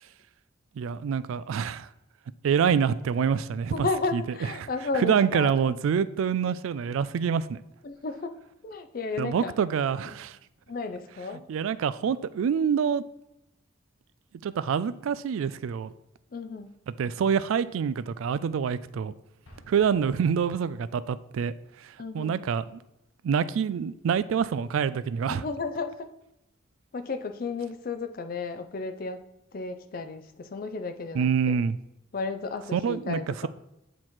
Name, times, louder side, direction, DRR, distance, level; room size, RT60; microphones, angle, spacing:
voice 1, 0.8-1.9 2.4-3.9 4.1-4.2 5.0-7.6 9.2-10.4 11.5-13.0 14.4-15.9 17.0-19.1 19.7-21.5 21.8-22.6 23.2-25.4 31.1-31.8 32.7-33.5, right 7 dB, 85° right, 0.3 m, -26 dB
voice 2, 3.7-5.5 7.8-8.4 8.6-9.5 10.7-11.5 16.3-16.8 22.0-22.4 25.3-26.1 26.9-29.2 29.5-31.6 32.1-33.5, left 3 dB, 45° left, 0.4 m, -33 dB
Explosion, 19.4-21.2, equal, 70° left, 1.1 m, -55 dB
7.7 x 3.1 x 4.3 m
head